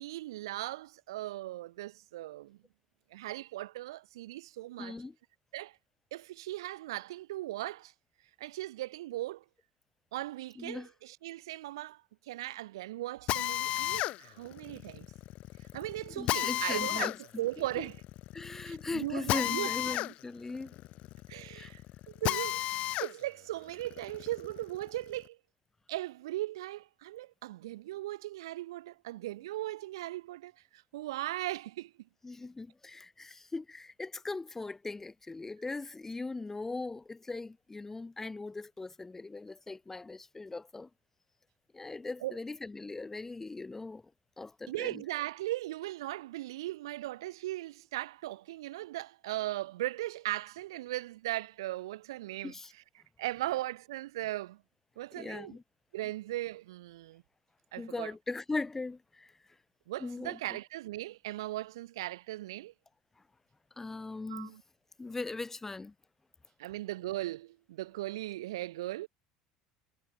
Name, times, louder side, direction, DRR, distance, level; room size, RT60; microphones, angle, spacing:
voice 1, 0.0-2.6 3.1-4.9 5.5-5.8 6.1-7.9 8.4-9.4 10.1-15.1 15.7-18.0 18.6-20.0 21.3-21.8 22.1-25.4 25.9-31.9 42.2-42.4 44.7-52.5 53.2-54.6 55.0-55.6 55.9-57.2 57.7-58.1 59.9-62.7 64.3-64.6 66.6-69.1, right 16 dB, 85° right, 1.3 m, -38 dB
voice 2, 4.8-5.2 10.6-10.9 16.1-17.1 17.8-17.9 18.3-20.8 21.5-21.7 32.2-40.9 41.7-44.0 44.4-45.0 52.4-52.7 55.2-55.6 57.8-59.3 60.0-60.4 63.8-64.6 65.0-65.9, left 3 dB, 15° left, 2.3 m, -39 dB
Drill, 13.3-23.1 23.6-25.2, left 16 dB, 55° left, 0.3 m, -34 dB
hypercardioid pair, 90°, 2 cm